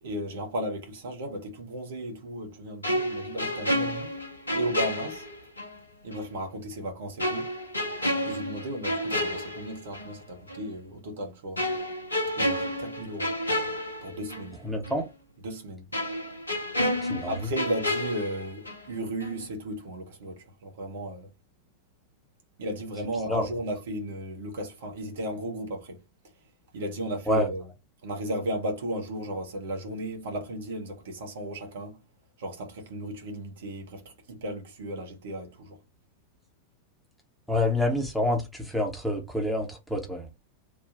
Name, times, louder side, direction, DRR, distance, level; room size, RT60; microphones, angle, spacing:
voice 1, 0.0-4.2 4.5-5.2 6.0-7.5 8.2-11.6 12.4-13.3 14.0-14.6 15.4-15.9 17.3-21.3 22.6-26.0 26.7-27.6 28.0-32.0 32.4-35.8, right 1 dB, 60° right, 1.2 m, -35 dB
sound 1, 2.8-5.8 6.1-6.2 7.2-10.2 10.5-10.7 11.6-14.6 14.8-15.0 15.9-18.9 19.2-19.4, left 1 dB, 80° left, 0.7 m, -30 dB
voice 2, 14.6-15.1 17.0-17.3 23.3-23.5 27.3-27.5 37.5-40.4, left 1 dB, ahead, 1.0 m, -27 dB
3.5 x 2.4 x 4.0 m
figure-of-eight pair, 90°, 0 cm